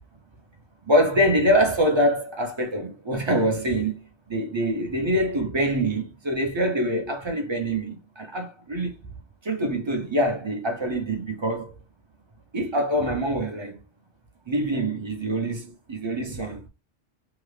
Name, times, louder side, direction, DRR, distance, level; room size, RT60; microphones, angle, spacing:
voice 1, 0.9-3.9 4.3-8.9 9.4-11.7 12.5-13.8 14.5-16.7, equal, 30° right, 0.6 m, -24 dB
2.8 x 2.3 x 3.2 m
omnidirectional pair, 1.3 m